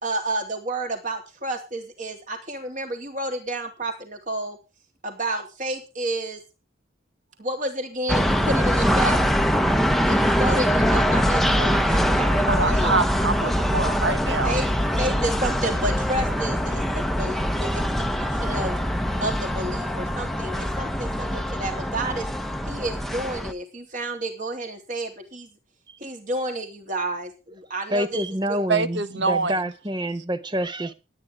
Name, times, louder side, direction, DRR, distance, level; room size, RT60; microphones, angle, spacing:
voice 1, 0.0-4.6 5.0-6.4 7.4-9.2 10.1-13.0 14.4-14.7 15.0-17.8 18.2-18.7 19.2-22.3 22.7-25.5 26.0-28.2 28.5-28.6, right 1 dB, 40° right, 3.5 m, -30 dB
sound 1, 8.1-23.5, equal, ahead, 1.0 m, -23 dB
voice 2, 12.4-14.6 28.7-29.6, right 4 dB, 65° right, 1.4 m, -25 dB
voice 3, 27.9-30.9, equal, 25° right, 1.1 m, -27 dB
19.0 x 9.9 x 3.7 m
head